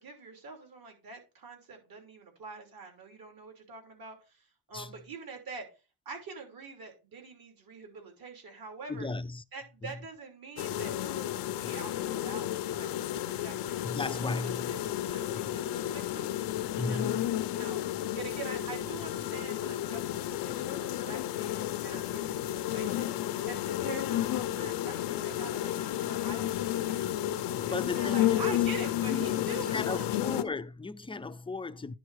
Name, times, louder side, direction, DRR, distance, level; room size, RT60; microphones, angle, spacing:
voice 1, 0.0-5.7 6.0-9.1 9.5-14.8 15.1-16.3 16.8-17.1 17.6-27.1 27.6-30.3, right 4 dB, 60° right, 3.1 m, -45 dB
voice 2, 8.9-9.4 9.8-9.9 13.8-14.9 15.3-15.6 16.8-17.3 27.7-28.7 29.1-32.0, left 3 dB, 15° left, 0.4 m, -36 dB
sound 1, 10.6-30.4, left 13 dB, 90° left, 0.7 m, -32 dB
10.5 x 3.8 x 4.7 m
cardioid pair, 100°, 40 cm